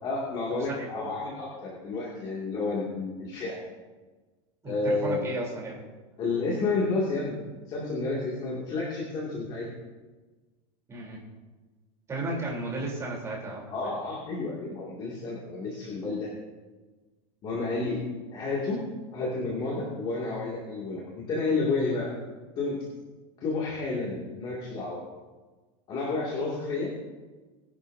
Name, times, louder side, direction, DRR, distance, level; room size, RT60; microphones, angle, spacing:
voice 1, 0.0-3.6 4.6-5.2 6.2-7.4 7.7-9.7 13.7-16.3 17.4-18.0 18.3-18.8 19.1-22.1 22.6-22.8 23.4-25.0 25.9-26.9, left 3 dB, 30° left, -5 dB, 2.4 m, -30 dB
voice 2, 0.6-1.1 4.6-5.8 10.9-11.2 12.1-14.0, right 2 dB, 15° right, -3 dB, 3.5 m, -34 dB
20.0 x 11.5 x 2.7 m, 1.3 s
supercardioid pair, 160°, 16 cm